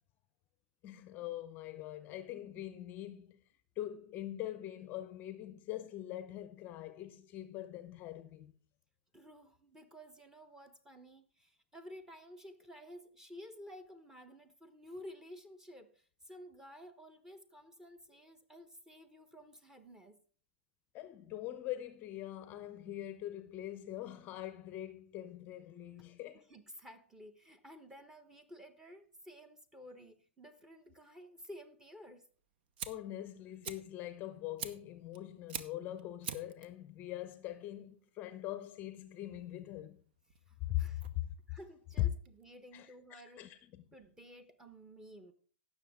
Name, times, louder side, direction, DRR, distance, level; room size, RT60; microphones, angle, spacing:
voice 1, 0.8-3.4 3.8-8.5 20.9-26.5 32.9-40.0 40.7-40.8 41.1-41.3 42.0-42.1 42.7-43.8, left 14 dB, 30° left, 0.7 m, -42 dB
voice 2, 9.1-20.2 26.0-26.1 26.3-32.3 40.5-41.0 41.5-43.5 43.9-45.3, equal, 10° right, 1.0 m, -53 dB
Fire, 32.3-42.8, right 8 dB, 55° right, 0.9 m, -48 dB
16.5 x 6.4 x 3.6 m
hypercardioid pair, 135°, 6 cm